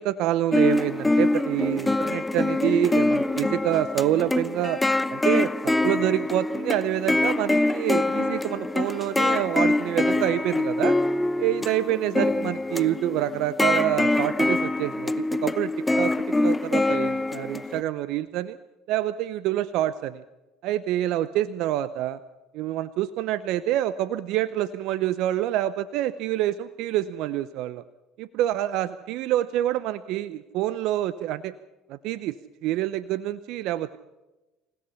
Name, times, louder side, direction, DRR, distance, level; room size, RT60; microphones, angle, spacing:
voice 1, 0.0-4.8 5.1-11.0 11.4-18.6 18.9-20.2 20.6-22.2 22.5-27.8 28.2-31.5 31.9-32.4 32.6-34.0, right 13 dB, 70° right, 15 dB, 0.7 m, -27 dB
sound 1, 0.5-17.8, left 2 dB, 15° left, 0.9 m, -24 dB
28.5 x 17.0 x 5.7 m, 1.0 s
hypercardioid pair, 75°, 0 cm